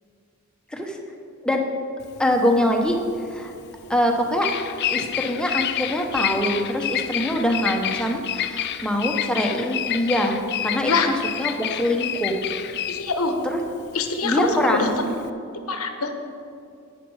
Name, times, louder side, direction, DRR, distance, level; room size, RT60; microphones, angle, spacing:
Bird vocalization bird call bird song, 2.0-15.3, left 11 dB, 50° left, 0.4 m, -29 dB
voice 1, 2.2-3.0 3.3-3.5 3.9-4.5 4.9-10.4 10.6-12.4 13.4-13.6 14.2-15.1, equal, 5° left, 2 dB, 0.9 m, -23 dB
voice 2, 12.9-13.3 13.9-14.9 15.7-16.1, left 4 dB, 85° left, 6 dB, 1.1 m, -24 dB
10.5 x 9.3 x 4.8 m, 2.6 s
head